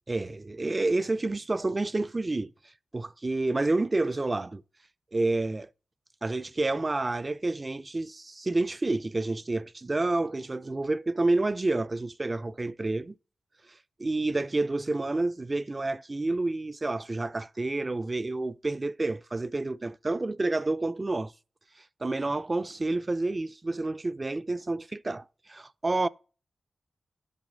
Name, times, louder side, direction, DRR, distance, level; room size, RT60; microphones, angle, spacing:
voice 1, 0.1-2.5 2.9-4.6 5.1-5.7 6.2-13.2 14.0-21.3 22.0-26.1, right 2 dB, 35° right, 0.4 m, -29 dB
7.3 x 6.2 x 3.8 m
cardioid pair, 45°, 0 cm